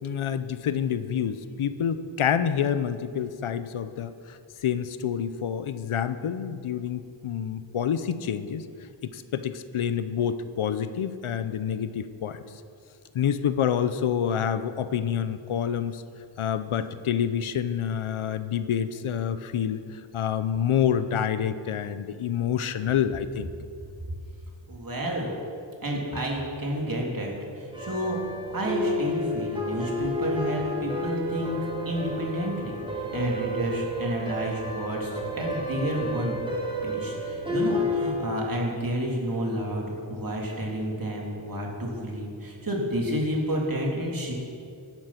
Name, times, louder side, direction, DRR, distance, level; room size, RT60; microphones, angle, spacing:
voice 1, 0.0-8.6 9.1-12.4 13.1-16.0 16.4-19.8 20.1-23.5, left 8 dB, 90° left, 12 dB, 0.8 m, -27 dB
voice 2, 24.7-25.3 25.8-28.2 28.5-31.6 31.8-36.3 36.8-44.3, equal, 45° right, -1 dB, 3.3 m, -30 dB
sound 1, 27.7-38.1, left 1 dB, 10° right, 2.7 m, -31 dB
16.0 x 12.0 x 5.9 m, 2.4 s
wide cardioid pair, 100°, 48 cm